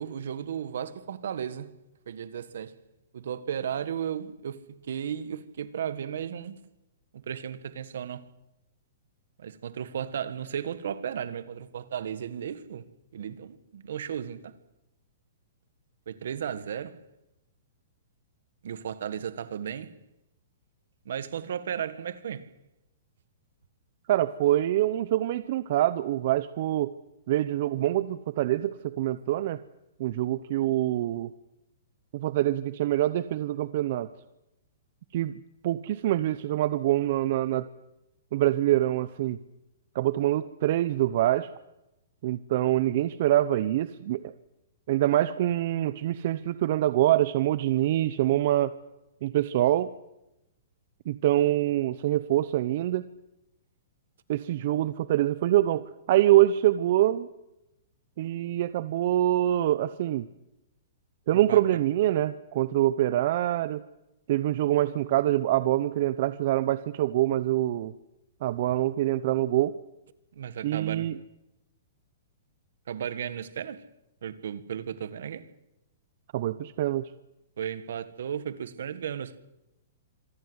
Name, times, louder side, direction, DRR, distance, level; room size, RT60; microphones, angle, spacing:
voice 1, 0.0-1.7 2.1-2.7 3.1-6.6 7.1-8.2 9.4-12.9 13.1-14.5 16.1-17.0 18.6-19.9 21.0-22.5 61.3-61.8 70.3-71.1 72.9-73.8 74.2-75.5 77.6-79.4, right 8 dB, 70° right, 1.7 m, -35 dB
voice 2, 24.1-26.9 27.3-29.6 30.0-31.3 32.1-34.1 35.1-37.7 38.3-39.4 39.9-41.5 42.2-44.3 44.9-48.7 49.2-49.9 51.1-53.0 54.3-57.3 58.2-60.3 61.3-63.8 64.3-67.9 68.4-69.7 70.6-71.2 76.3-77.1, right 14 dB, 50° right, 0.7 m, -25 dB
26.0 x 17.5 x 8.1 m
hypercardioid pair, 150°, 0 cm